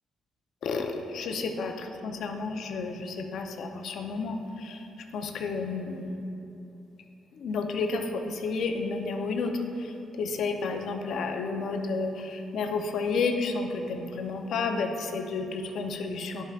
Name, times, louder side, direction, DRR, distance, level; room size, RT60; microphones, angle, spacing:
voice 1, 0.6-4.9 5.1-6.2 7.3-16.4, left 4 dB, 70° left, 4 dB, 0.7 m, -31 dB
11.5 x 5.7 x 2.4 m, 2.9 s
cardioid pair, 90°, 0 cm